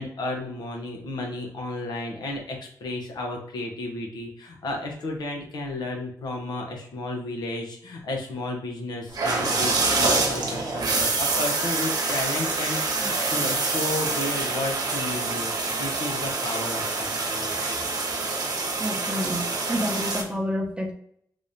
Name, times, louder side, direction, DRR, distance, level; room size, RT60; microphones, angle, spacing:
voice 1, 0.0-17.5, left 2 dB, 80° left, 1 dB, 1.0 m, -33 dB
sound 1, 9.1-20.2, right 3 dB, 65° right, 0.9 m, -26 dB
voice 2, 18.8-20.9, equal, 15° right, 2 dB, 0.9 m, -29 dB
3.4 x 2.7 x 3.4 m, 0.66 s
cardioid pair, 70°, 7 cm